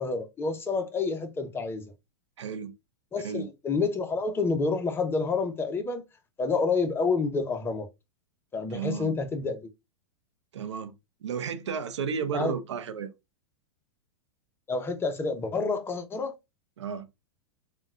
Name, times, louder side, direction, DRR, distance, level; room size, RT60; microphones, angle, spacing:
voice 1, 0.0-1.8 3.1-6.0 6.4-7.9 8.5-9.6 12.3-12.5 14.7-16.3, left 4 dB, 15° left, 0.6 m, -28 dB
voice 2, 2.4-2.7 3.2-3.5 8.7-9.1 10.5-10.9 11.2-13.1 16.8-17.1, right 7 dB, 90° right, 0.5 m, -33 dB
3.7 x 2.2 x 2.3 m
hypercardioid pair, 125°, 15 cm